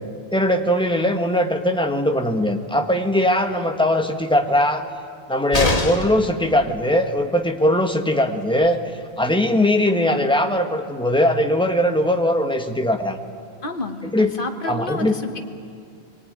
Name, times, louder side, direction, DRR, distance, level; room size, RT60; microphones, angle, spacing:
voice 1, 0.3-4.8 5.3-8.8 9.2-13.2 14.1-14.3 14.6-15.1, left 1 dB, 5° left, 4 dB, 1.3 m, -20 dB
sound 1, 5.5-6.3 8.2-8.3 8.6-8.7, left 2 dB, 35° left, 1.6 m, -22 dB
voice 2, 13.6-15.4, left 2 dB, 55° left, 5 dB, 1.7 m, -30 dB
24.5 x 20.5 x 9.5 m, 2.4 s
omnidirectional pair, 1.1 m